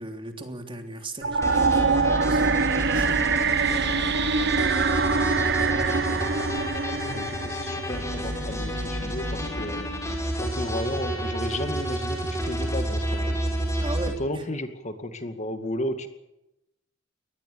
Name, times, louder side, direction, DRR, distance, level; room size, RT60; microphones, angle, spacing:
voice 1, 0.0-4.1 5.7-6.1 6.9-7.4 13.8-14.4, right 2 dB, 25° right, 5 dB, 3.2 m, -38 dB
sound 1, 1.2-8.3, right 4 dB, 60° right, 1.1 m, -24 dB
sound 2, 1.4-14.1, equal, 15° left, 5.7 m, -30 dB
voice 2, 4.4-5.3 5.8-6.2 7.1-13.4 13.7-13.8 14.2-16.1, left 1 dB, 40° left, 8 dB, 2.2 m, -34 dB
24.0 x 19.5 x 7.0 m, 0.89 s
head